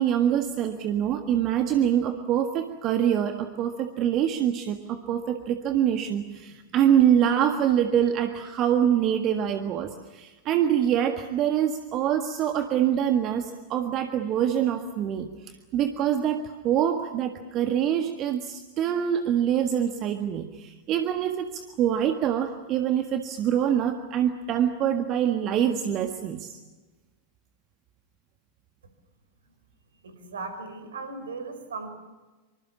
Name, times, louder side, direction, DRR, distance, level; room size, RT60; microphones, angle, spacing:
voice 1, 0.0-15.3 15.7-26.6, right 9 dB, 35° right, 7 dB, 1.6 m, -25 dB
voice 2, 30.0-31.9, right 3 dB, 65° right, 9 dB, 4.9 m, -37 dB
25.5 x 25.5 x 7.2 m, 1.2 s
figure-of-eight pair, 90°, 0 cm